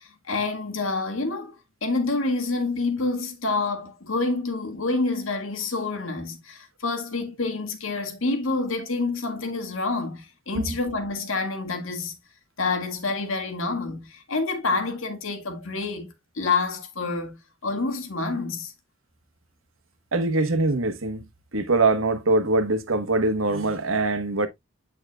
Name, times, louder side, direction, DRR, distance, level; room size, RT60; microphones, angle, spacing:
voice 1, 0.0-1.6 1.8-12.2 12.6-17.4 17.6-18.7, left 3 dB, 80° left, 1.8 m, -28 dB
voice 2, 20.1-21.2 21.5-24.5, right 2 dB, 80° right, 1.2 m, -23 dB
9.1 x 5.8 x 2.3 m
head